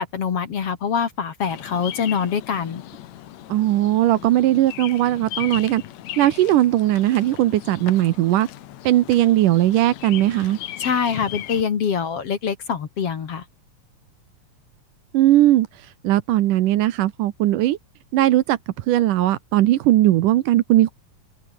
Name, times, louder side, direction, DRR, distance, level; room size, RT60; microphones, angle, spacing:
voice 1, 0.0-2.8 10.8-13.4, left 7 dB, 50° left, 2.5 m, -24 dB
Bird vocalization bird call bird song, 1.5-11.6, left 13 dB, 65° left, 2.0 m, -37 dB
voice 2, 3.5-5.8 6.2-8.5 8.9-10.6 15.1-15.7 16.0-17.8 18.1-18.6 18.9-20.9, right 14 dB, 75° right, 2.5 m, -18 dB
omnidirectional pair, 4.0 m